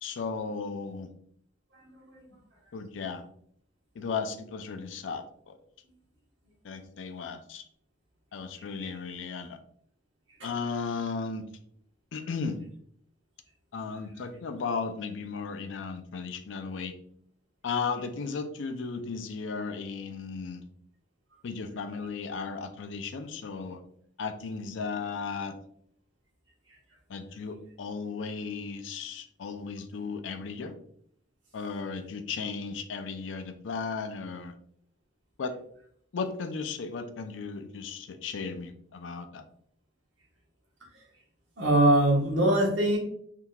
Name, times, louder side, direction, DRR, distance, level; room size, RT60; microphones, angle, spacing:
voice 1, 0.0-1.1 2.7-3.2 4.0-5.6 6.6-7.6 8.3-9.6 10.4-11.5 12.1-12.6 13.7-16.9 17.6-20.6 21.4-23.8 24.2-25.6 27.1-30.7 31.5-34.5 35.4-35.5 36.1-39.4, left 5 dB, 85° left, 8 dB, 0.4 m, -35 dB
voice 2, 41.6-43.0, right 1 dB, 90° right, -2 dB, 1.2 m, -22 dB
3.6 x 2.8 x 2.3 m, 0.65 s
head